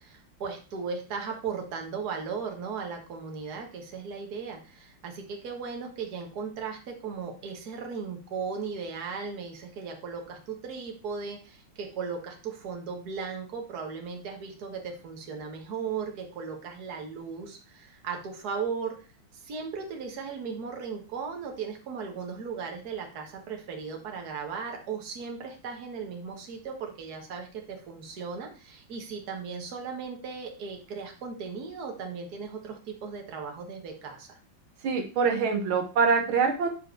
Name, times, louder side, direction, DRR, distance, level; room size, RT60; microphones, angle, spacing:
voice 1, 0.0-18.9 19.4-34.4, right 5 dB, 50° right, 2 dB, 1.8 m, -37 dB
voice 2, 34.8-36.7, right 5 dB, 80° right, 4 dB, 1.9 m, -24 dB
7.8 x 4.7 x 4.5 m, 0.35 s
omnidirectional pair, 2.2 m